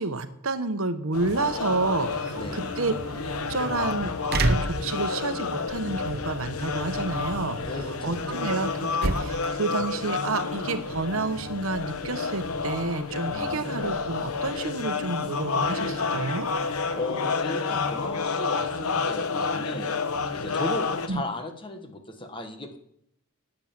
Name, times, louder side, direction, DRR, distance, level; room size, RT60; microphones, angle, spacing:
voice 1, 0.0-2.9 3.5-8.7 9.0-16.5 21.1-21.2, right 3 dB, 70° right, 10 dB, 1.0 m, -30 dB
sound 1, 1.1-21.1, left 4 dB, 85° left, 1.0 m, -30 dB
sound 2, 1.6-17.0, right 2 dB, 45° right, 0.8 m, -35 dB
voice 2, 2.3-2.7 7.6-8.5 13.3-13.7 16.9-19.9 20.3-22.8, left 1 dB, 25° left, 6 dB, 1.2 m, -36 dB
11.0 x 9.1 x 7.4 m, 0.74 s
head